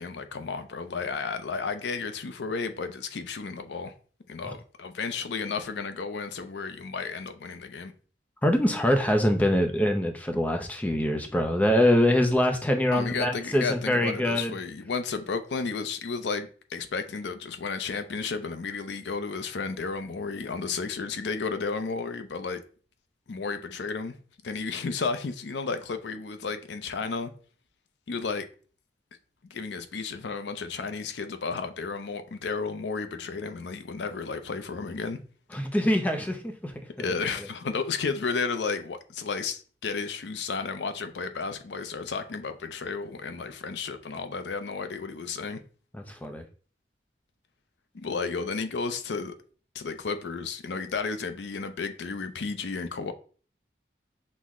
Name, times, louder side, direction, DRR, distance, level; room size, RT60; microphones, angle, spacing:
voice 1, 0.0-3.9 4.3-7.9 12.9-22.6 23.3-24.2 24.4-27.3 28.1-28.5 29.5-35.2 37.0-45.6 47.9-49.3 49.7-53.1, left 4 dB, 80° left, 0.5 m, -33 dB
voice 2, 8.4-14.5 35.5-37.1 46.1-46.4, left 1 dB, 10° left, 0.4 m, -24 dB
6.0 x 2.1 x 3.6 m
head